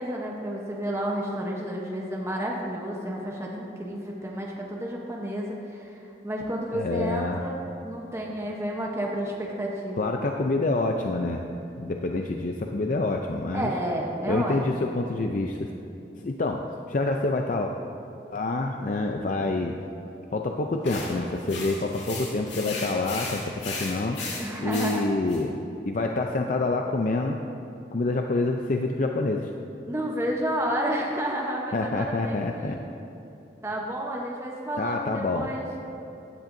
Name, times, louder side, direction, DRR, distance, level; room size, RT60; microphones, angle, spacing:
voice 1, 0.0-5.9 6.2-10.1 13.5-14.6 24.4-25.1 29.9-32.9 33.6-35.7, right 1 dB, 15° right, -2 dB, 0.9 m, -31 dB
voice 2, 6.7-7.4 10.0-11.4 11.8-13.7 14.3-15.7 16.2-16.6 16.9-17.7 18.3-19.8 20.3-24.2 24.6-25.5 25.8-27.4 27.9-29.5 31.7-32.8 34.8-35.5, left 2 dB, 45° left, 3 dB, 0.5 m, -27 dB
sound 1, 20.8-25.4, left 3 dB, 85° left, 2.1 m, -36 dB
15.0 x 10.0 x 2.6 m, 3.0 s
head